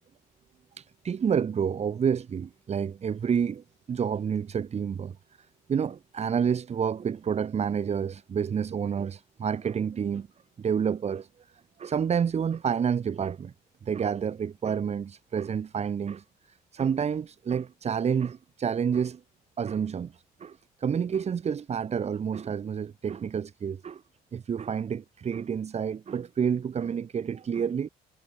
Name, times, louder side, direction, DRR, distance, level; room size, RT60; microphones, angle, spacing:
voice 1, 0.8-5.1 5.7-10.3 10.6-11.3 11.8-13.5 13.8-19.2 19.6-20.1 20.4-24.0 24.3-27.9, right 7 dB, 40° right, 3.5 m, -29 dB
cardioid pair, 110°, 17 cm